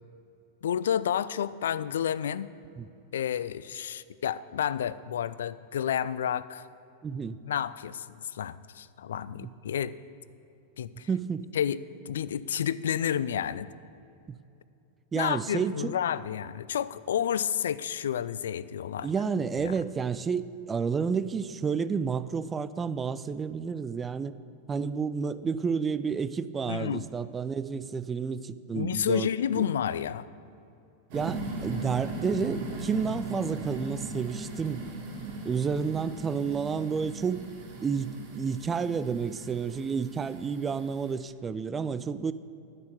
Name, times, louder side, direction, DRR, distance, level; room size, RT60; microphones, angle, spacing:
voice 1, 0.6-2.5 3.1-6.7 7.4-9.9 10.8-11.1 11.5-11.8 12.1-13.7 15.1-19.1 19.6-19.7 26.7-27.1 28.7-30.3, left 9 dB, 65° left, 17 dB, 0.3 m, -30 dB
voice 2, 7.0-7.4 9.4-9.5 11.1-11.5 14.3-14.4 15.1-16.0 19.0-24.3 24.7-29.3 29.6-29.7 31.1-34.8 35.4-37.4 37.8-42.3, right 6 dB, 20° right, 14 dB, 0.4 m, -30 dB
sound 1, 31.1-41.1, right 2 dB, 45° right, 2.3 m, -39 dB
9.4 x 6.7 x 8.6 m, 2.7 s
figure-of-eight pair, 90°, 0 cm